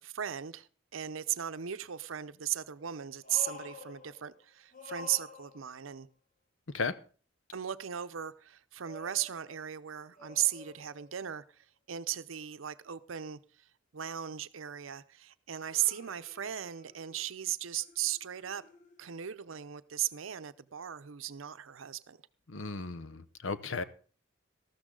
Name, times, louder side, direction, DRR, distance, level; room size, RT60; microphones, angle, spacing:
voice 1, 0.0-6.1 7.5-13.7 13.9-18.6 19.0-22.2, right 11 dB, 85° right, 0.7 m, -36 dB
sound 1, 1.7-1.8 3.2-4.5 4.7-5.9 8.8-11.4 15.7-17.4 17.8-19.2 20.2-20.3, left 4 dB, 40° left, 1.5 m, -51 dB
voice 2, 22.5-23.8, left 4 dB, 80° left, 0.8 m, -35 dB
13.5 x 12.5 x 3.8 m
head